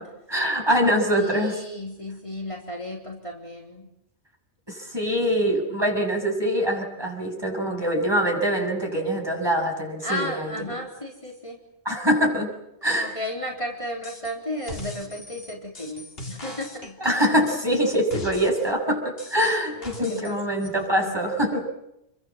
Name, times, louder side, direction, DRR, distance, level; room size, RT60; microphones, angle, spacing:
voice 1, 0.3-1.6 4.7-10.5 11.9-12.5 12.8-13.1 17.0-21.7, equal, 20° right, 1 dB, 7.3 m, -24 dB
voice 2, 1.1-3.9 10.0-11.6 12.9-17.0 19.7-20.3 21.0-21.4, left 1 dB, 25° left, -2 dB, 4.0 m, -34 dB
sound 1, 14.0-14.3 14.6-18.7 19.2-20.3 20.6-20.7, left 1 dB, 55° left, 3.7 m, -40 dB
29.5 x 23.5 x 7.5 m, 0.83 s
omnidirectional pair, 1.2 m